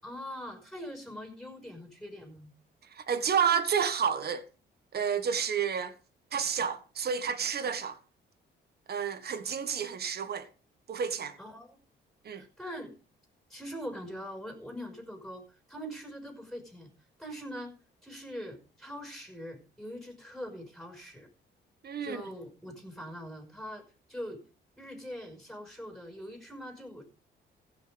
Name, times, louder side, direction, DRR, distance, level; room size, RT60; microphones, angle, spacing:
voice 1, 0.0-2.5 11.4-11.8 12.3-12.9 13.5-16.9 17.2-17.7 18.0-21.3 22.0-23.8 24.1-24.4 24.8-27.0, equal, ahead, 5.6 m, -42 dB
voice 2, 2.9-4.4 4.9-5.9 6.3-8.0 8.9-10.5 10.9-11.3 12.2-12.4 21.8-22.2, right 7 dB, 55° right, 1.6 m, -30 dB
15.5 x 6.4 x 5.2 m
cardioid pair, 90°, 20 cm